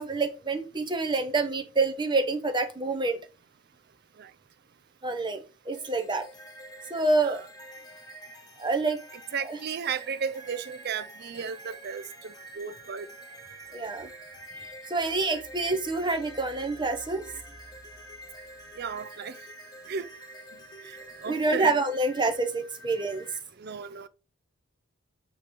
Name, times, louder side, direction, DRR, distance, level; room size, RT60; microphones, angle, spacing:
voice 1, 0.0-3.2 5.0-6.3 6.9-7.4 8.6-9.0 9.5-9.6 13.7-14.1 14.9-17.2 21.2-23.3, right 3 dB, 20° right, 0.9 m, -27 dB
sound 1, 5.7-23.4, right 1 dB, 20° left, 1.2 m, -47 dB
voice 2, 9.3-13.1 18.8-19.4 19.9-20.1 20.8-20.9 21.2-21.7 23.6-24.1, right 6 dB, 50° right, 0.5 m, -34 dB
8.4 x 3.2 x 5.1 m
head